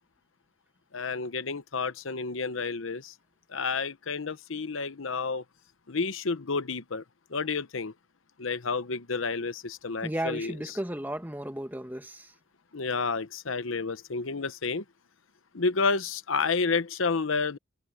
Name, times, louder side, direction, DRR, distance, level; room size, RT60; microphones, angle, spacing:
voice 1, 0.9-3.1 3.5-5.4 5.9-7.0 7.3-7.9 8.4-10.5 12.7-14.8 15.5-17.6, left 4 dB, 75° left, 0.9 m, -30 dB
voice 2, 10.0-12.3, right 1 dB, 10° right, 1.6 m, -34 dB
head